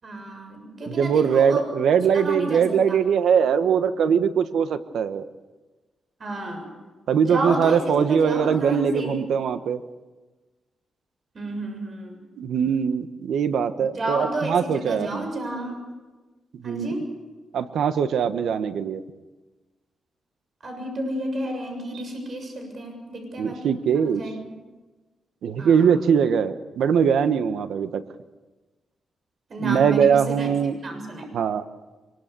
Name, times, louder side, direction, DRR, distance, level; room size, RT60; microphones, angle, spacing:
voice 1, 0.0-1.7 2.1-3.0 6.2-6.7 7.2-9.3 11.3-12.2 13.9-15.8 16.6-17.2 20.6-24.4 25.6-25.9 29.5-30.5 30.8-31.3, right 1 dB, 45° right, 4 dB, 7.1 m, -31 dB
voice 2, 0.9-5.2 7.1-9.8 12.4-15.3 16.5-16.9 17.5-19.0 23.4-24.2 25.4-28.0 29.6-30.8 31.3-31.6, right 7 dB, 80° right, 10 dB, 1.3 m, -21 dB
24.0 x 22.0 x 6.9 m, 1.2 s
cardioid pair, 115°, 0 cm